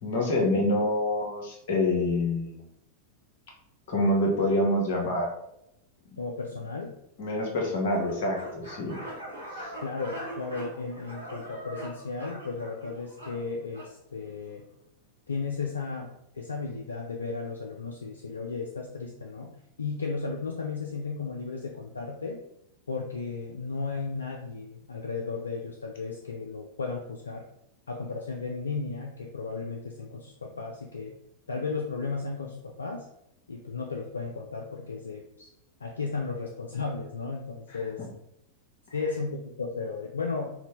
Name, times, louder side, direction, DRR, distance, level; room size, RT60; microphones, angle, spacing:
voice 1, 0.0-2.6 3.9-5.3 7.2-9.0, left 1 dB, 50° left, 0 dB, 1.0 m, -26 dB
voice 2, 6.2-6.9 9.8-14.7 15.3-19.5 19.8-22.4 22.9-27.4 27.9-31.2 31.5-33.1 33.5-35.5 35.8-38.1 38.9-40.5, left 4 dB, 75° left, 1 dB, 0.3 m, -34 dB
sound 1, 7.9-13.9, right 1 dB, 85° right, 1.0 m, -42 dB
4.1 x 2.1 x 2.9 m, 0.80 s
figure-of-eight pair, 90°, 0 cm